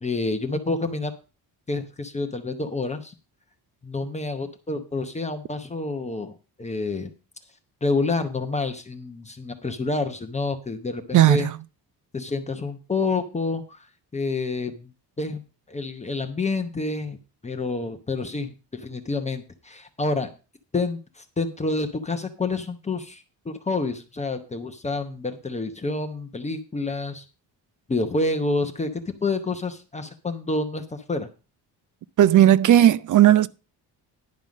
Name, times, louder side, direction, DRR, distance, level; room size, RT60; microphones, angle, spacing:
voice 1, 0.0-1.1 1.7-3.1 3.8-7.1 7.8-11.5 12.1-13.9 14.1-14.9 15.2-15.4 15.7-17.2 17.4-20.3 20.7-27.2 27.9-31.3, left 3 dB, 15° left, 0.8 m, -28 dB
voice 2, 11.1-11.6 32.2-33.5, right 12 dB, 50° right, 0.5 m, -15 dB
10.5 x 5.5 x 6.3 m
cardioid pair, 175°, 42 cm